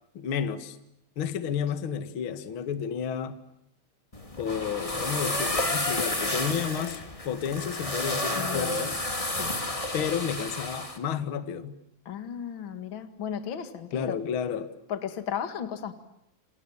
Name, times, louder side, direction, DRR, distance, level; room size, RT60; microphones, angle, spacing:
voice 1, 0.1-0.8 1.1-3.4 4.4-9.0 9.9-11.7 13.9-14.7, left 8 dB, 75° left, 10 dB, 1.2 m, -31 dB
sound 1, 4.1-11.0, left 1 dB, 20° left, 1.0 m, -31 dB
voice 2, 8.3-8.9 9.3-9.6 10.0-10.1 12.0-14.2 14.9-15.9, left 8 dB, 55° left, 9 dB, 1.3 m, -35 dB
29.0 x 27.5 x 7.3 m, 0.78 s
omnidirectional pair, 5.5 m